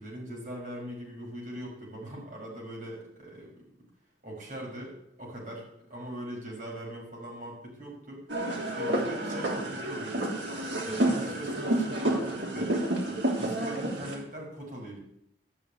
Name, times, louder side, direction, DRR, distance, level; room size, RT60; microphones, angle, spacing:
voice 1, 0.0-3.5 4.2-8.3 8.8-10.3 10.8-12.8 13.4-15.0, right 1 dB, 45° right, -3 dB, 6.2 m, -40 dB
sound 1, 8.3-14.2, right 1 dB, 85° right, 3.2 m, -30 dB
12.5 x 6.9 x 8.8 m, 0.76 s
head